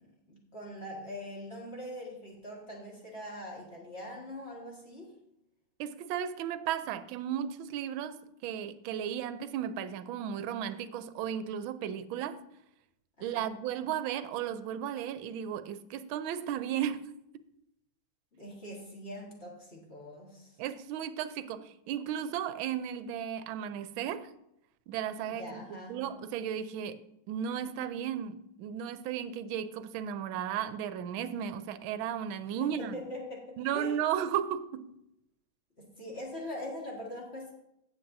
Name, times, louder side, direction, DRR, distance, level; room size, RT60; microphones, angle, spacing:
voice 1, 0.0-5.1 13.2-13.5 18.3-20.6 25.3-26.0 32.6-33.9 35.8-37.5, left 1 dB, 30° left, 1.9 m, -43 dB
voice 2, 5.8-12.4 13.2-17.1 20.6-24.3 24.9-25.6 25.9-27.0 27.3-32.9 33.6-34.9, right 9 dB, 80° right, 1.4 m, -35 dB
15.5 x 7.4 x 2.6 m
omnidirectional pair, 2.3 m